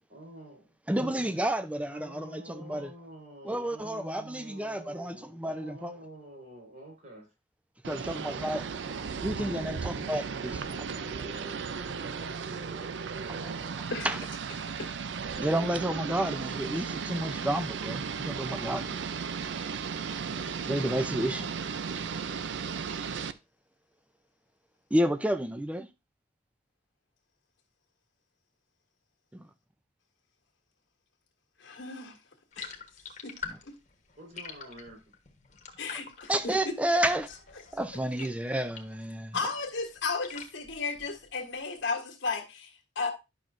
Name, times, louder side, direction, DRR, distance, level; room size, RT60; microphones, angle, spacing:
voice 1, 0.0-0.7 1.8-7.3 8.0-8.4 9.5-9.9 10.4-12.9 13.2-13.8 34.2-35.0, right 1 dB, 45° right, 4.7 m, -47 dB
voice 2, 0.9-2.9 3.4-5.9 7.9-8.6 9.2-10.6 13.4-13.5 14.0-14.2 15.4-19.0 20.7-21.5 24.9-25.9 29.3-29.5 33.5-33.6 36.3-37.3 37.7-39.4, right 1 dB, 5° right, 0.5 m, -30 dB
sound 1, 7.8-23.3, right 6 dB, 70° right, 0.5 m, -35 dB
voice 3, 31.6-32.2 32.6-32.7 33.2-33.4 33.7-33.8 35.8-37.0 39.3-43.1, left 4 dB, 80° left, 1.8 m, -34 dB
sound 2, 32.5-39.1 39.4-41.5, left 6 dB, 40° left, 1.2 m, -46 dB
10.5 x 6.1 x 2.6 m
head